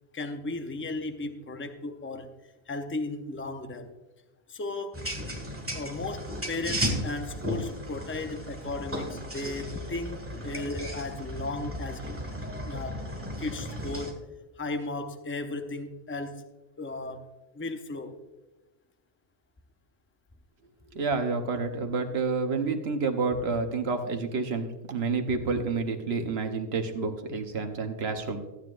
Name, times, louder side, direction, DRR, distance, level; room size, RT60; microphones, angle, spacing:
voice 1, 0.1-2.3 2.7-3.9 4.5-5.0 5.7-12.1 12.7-13.1 13.4-14.2 14.6-16.4 16.8-17.3 17.5-18.1, left 2 dB, 15° left, 7 dB, 0.5 m, -35 dB
sound 1, 4.9-14.1, equal, 10° right, 1.5 m, -35 dB
voice 2, 20.9-28.4, right 4 dB, 75° right, 6 dB, 1.2 m, -29 dB
14.5 x 9.2 x 2.5 m, 1.1 s
omnidirectional pair, 1.1 m